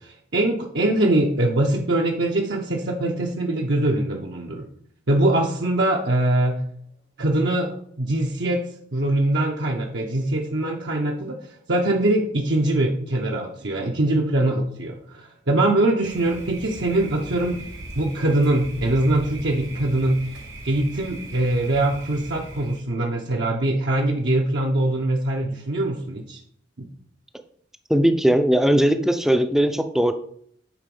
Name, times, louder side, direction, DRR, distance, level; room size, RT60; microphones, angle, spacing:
voice 1, 0.0-4.7 5.1-6.6 7.2-8.6 8.9-17.6 18.0-20.3 20.6-26.4 26.8-26.9, right 1 dB, 65° right, 0 dB, 0.9 m, -22 dB
Thunder, 16.0-22.8, right 1 dB, 85° right, 2.9 m, -39 dB
voice 2, 27.9-30.1, equal, ahead, 8 dB, 0.5 m, -19 dB
8.9 x 4.2 x 5.4 m, 0.64 s
head